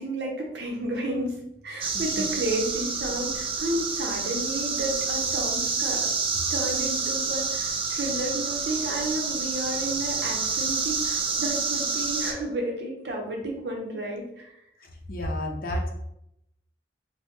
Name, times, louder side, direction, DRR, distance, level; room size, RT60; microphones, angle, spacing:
voice 1, 0.0-6.1 6.5-14.5, right 1 dB, 75° right, 1 dB, 0.7 m, -31 dB
sound 1, 1.8-12.3, right 4 dB, 30° right, 0.3 m, -28 dB
voice 2, 1.9-2.3 15.1-15.9, left 1 dB, 55° left, 1 dB, 0.6 m, -30 dB
3.1 x 2.1 x 3.1 m, 0.79 s
head